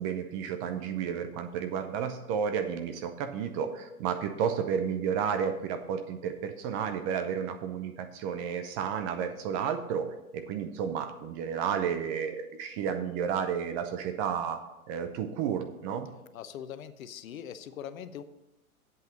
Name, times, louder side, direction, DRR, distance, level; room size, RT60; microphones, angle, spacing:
voice 1, 0.0-16.1, right 7 dB, 25° right, 8 dB, 0.6 m, -32 dB
voice 2, 16.3-18.2, left 9 dB, 65° left, 12 dB, 0.9 m, -41 dB
8.2 x 8.0 x 5.3 m, 0.92 s
hypercardioid pair, 130°, 44 cm